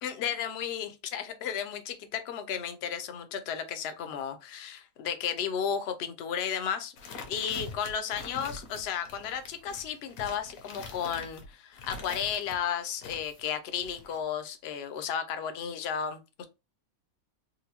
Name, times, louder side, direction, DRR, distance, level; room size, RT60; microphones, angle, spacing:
voice 1, 0.0-6.9 7.3-16.4, left 8 dB, 60° left, 0.7 m, -33 dB
sound 1, 7.0-12.6 13.0-14.2, left 4 dB, 75° left, 1.1 m, -44 dB
4.0 x 2.2 x 2.8 m
omnidirectional pair, 1.5 m